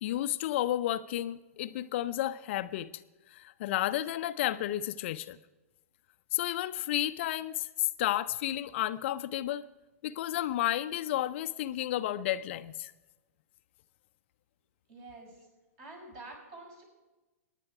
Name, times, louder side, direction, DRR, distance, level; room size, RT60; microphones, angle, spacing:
voice 1, 0.0-3.0 3.3-5.4 6.3-9.6 10.0-12.9, left 13 dB, 50° left, 13 dB, 0.5 m, -32 dB
voice 2, 14.9-15.5 15.8-16.8, right 2 dB, 45° right, 1 dB, 6.4 m, -48 dB
22.5 x 9.8 x 4.9 m, 1.1 s
hypercardioid pair, 115°, 8 cm